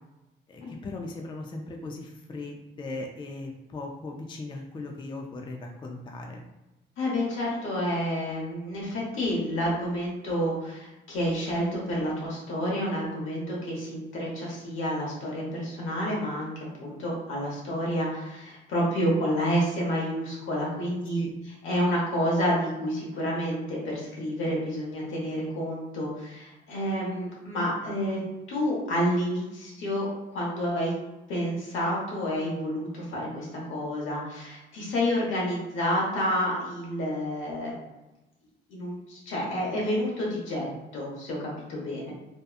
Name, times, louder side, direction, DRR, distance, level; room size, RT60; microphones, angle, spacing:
voice 1, 0.5-6.4 21.2-21.3, left 2 dB, 25° left, 1 dB, 0.4 m, -38 dB
voice 2, 7.0-16.5 16.8-21.2 21.6-28.2 28.5-30.9 31.3-37.8 38.7-42.1, equal, 80° left, -3 dB, 1.0 m, -29 dB
2.7 x 2.2 x 2.4 m, 1.0 s
cardioid pair, 90°, 20 cm